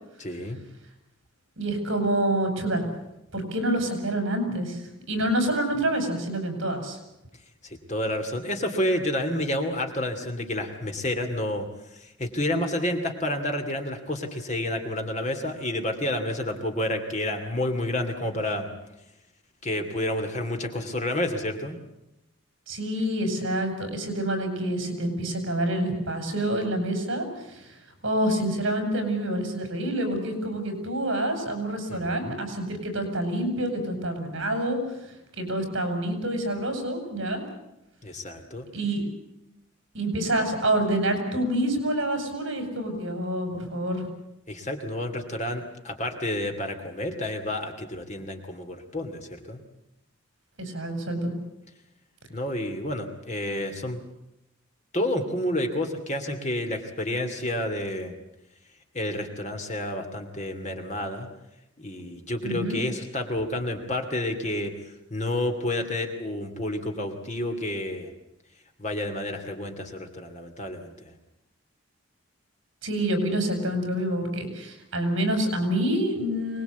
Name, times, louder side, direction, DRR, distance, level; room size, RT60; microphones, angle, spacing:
voice 1, 0.2-0.6 7.6-11.7 11.9-18.7 19.6-21.8 31.9-32.4 38.0-38.7 44.5-49.6 52.3-54.0 54.9-58.1 58.9-61.3 61.8-64.7 65.1-68.1 68.8-71.1, left 1 dB, 35° left, 5 dB, 2.8 m, -30 dB
voice 2, 1.6-2.8 3.3-7.0 22.7-27.8 28.0-34.8 35.4-37.4 38.7-39.0 39.9-44.1 50.6-51.3 62.4-62.8 72.8-76.6, right 1 dB, 60° right, 7 dB, 6.3 m, -27 dB
24.5 x 20.0 x 8.3 m, 0.89 s
head